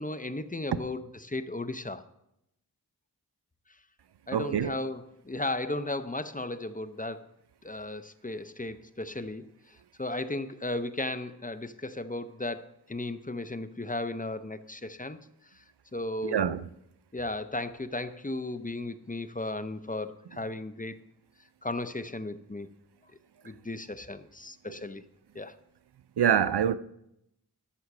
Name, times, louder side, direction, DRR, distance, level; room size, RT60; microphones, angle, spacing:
voice 1, 0.0-2.0 4.3-7.3 7.6-9.4 10.0-15.2 15.9-16.6 17.1-21.0 21.6-22.7 23.4-25.0 25.3-25.6, left 2 dB, 20° left, 0.6 m, -35 dB
voice 2, 4.3-4.8 16.2-16.6 24.7-24.8 26.2-26.7, right 8 dB, 90° right, 0.5 m, -25 dB
13.0 x 6.4 x 6.0 m
wide cardioid pair, 45°, 39 cm